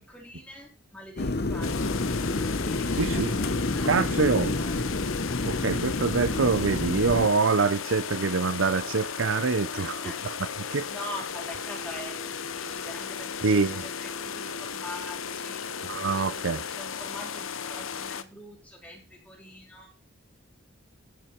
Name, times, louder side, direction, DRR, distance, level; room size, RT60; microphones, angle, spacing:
voice 1, 0.0-1.8 2.5-4.8 9.7-10.2 10.6-15.7 16.1-19.9, left 1 dB, 5° left, 3.6 m, -44 dB
sound 1, 1.2-7.3, left 2 dB, 50° left, 0.8 m, -29 dB
sound 2, 1.6-18.2, left 6 dB, 75° left, 0.9 m, -35 dB
voice 2, 3.0-3.3 3.9-4.5 5.4-10.0 10.7-10.8 13.4-13.8 15.8-16.6, right 4 dB, 65° right, 0.6 m, -25 dB
15.5 x 6.1 x 4.5 m
head